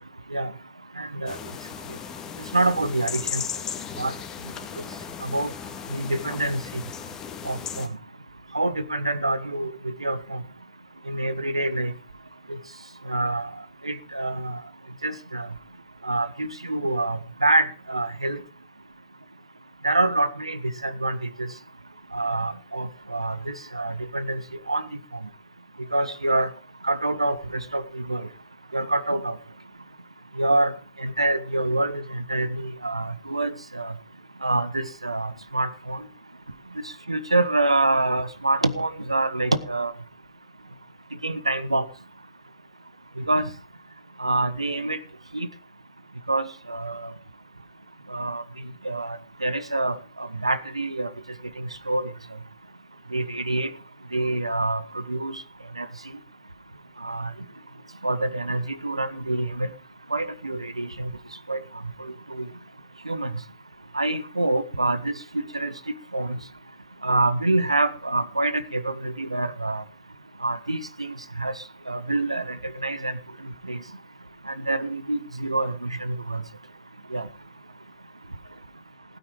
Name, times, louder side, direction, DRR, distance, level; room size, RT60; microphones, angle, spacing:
voice 1, 1.0-1.4 2.5-3.4 4.0-4.1 5.2-5.5 5.9-6.8 7.4-7.9 8.5-10.4 11.1-11.9 13.1-13.5 13.8-14.6 15.0-15.5 16.0-18.4 19.8-21.5 22.1-24.4 24.7-24.8 25.9-26.5 26.8-27.4 27.7-28.3 28.7-29.4 30.4-30.7 31.0-33.9 34.4-36.0 37.1-39.9 41.2-41.8 43.2-43.5 44.2-45.0 45.3-45.5 46.3-47.1 48.1-48.4 48.8-51.1 51.6-52.0 53.1-53.7 54.1-55.4 55.8-55.9 57.0-57.3 58.0-59.7 60.1-61.1 61.5-61.6 62.0-62.5 63.1-63.3 63.9-65.1 65.5-65.7 66.1-66.4 67.0-69.8 70.4-71.5 71.9-73.1 73.7-73.8 74.5-76.4 77.1-77.3, right 2 dB, 85° right, 1.3 m, -26 dB
sound 1, 1.3-7.9, left 8 dB, 20° left, 2.0 m, -36 dB
16.0 x 9.5 x 4.8 m
figure-of-eight pair, 110°, 3 cm